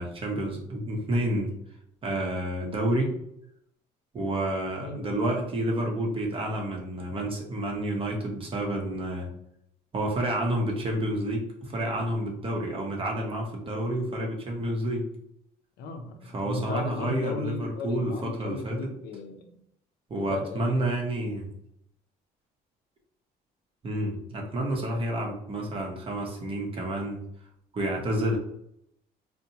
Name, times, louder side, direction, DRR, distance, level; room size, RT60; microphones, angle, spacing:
voice 1, 0.0-1.5 2.0-3.1 4.1-9.3 9.9-15.1 16.3-18.9 20.1-21.5 23.8-27.2 27.7-28.4, right 1 dB, 30° right, 0 dB, 0.7 m, -29 dB
voice 2, 4.8-5.1 15.8-19.6 20.3-20.9, left 3 dB, 80° left, 5 dB, 0.5 m, -36 dB
2.7 x 2.1 x 2.7 m, 0.73 s
cardioid pair, 110°, 17 cm